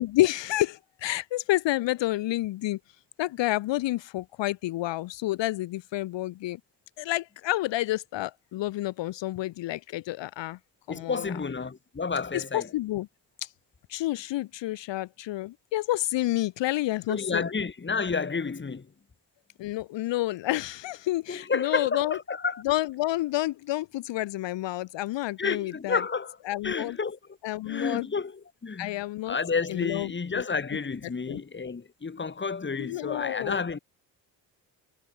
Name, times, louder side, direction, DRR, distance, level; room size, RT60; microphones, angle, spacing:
voice 1, 0.0-2.8 3.2-6.6 7.0-10.6 10.9-11.3 12.3-13.1 13.4-13.5 13.9-17.4 19.6-22.2 22.6-26.0 26.5-27.0 27.4-28.1 28.8-29.4 29.7-30.4 31.3-31.4 32.8-33.6, left 16 dB, 65° left, 1.1 m, -29 dB
voice 2, 10.9-12.7 17.1-18.9 21.3-22.6 25.4-26.4 26.6-27.2 27.7-29.0 29.3-33.8, left 5 dB, 25° left, 1.7 m, -30 dB
hypercardioid pair, 50°, 48 cm